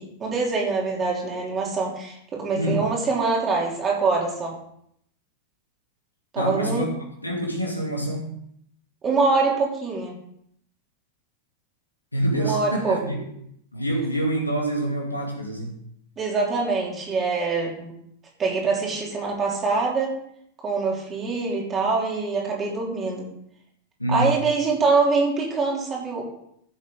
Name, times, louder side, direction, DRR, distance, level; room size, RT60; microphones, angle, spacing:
voice 1, 0.0-4.6 6.3-6.9 9.0-10.1 12.4-13.0 16.2-17.9 18.4-20.1 20.6-23.3 24.1-26.2, right 4 dB, 25° right, -2 dB, 3.4 m, -24 dB
voice 2, 6.4-6.9 7.2-8.3 12.1-13.2 13.7-15.8 24.0-24.3, right 1 dB, 85° left, 1 dB, 2.3 m, -26 dB
15.0 x 7.4 x 3.9 m, 0.70 s
figure-of-eight pair, 90°, 0 cm